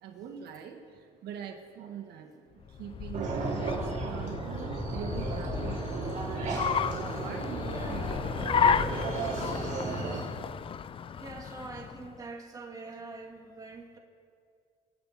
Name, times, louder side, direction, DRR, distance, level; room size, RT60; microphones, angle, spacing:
voice 1, 0.0-5.8 6.4-10.3 11.1-11.2, right 8 dB, 70° right, 2 dB, 1.7 m, -44 dB
Car, 2.6-12.2, left 7 dB, 30° left, 0.4 m, -33 dB
sound 1, 3.1-10.2, right 3 dB, 50° right, 3.6 m, -34 dB
voice 2, 7.7-8.1 11.1-14.0, right 3 dB, 20° right, 0 dB, 1.9 m, -44 dB
26.5 x 8.9 x 4.2 m, 2.3 s
cardioid pair, 110°, 17 cm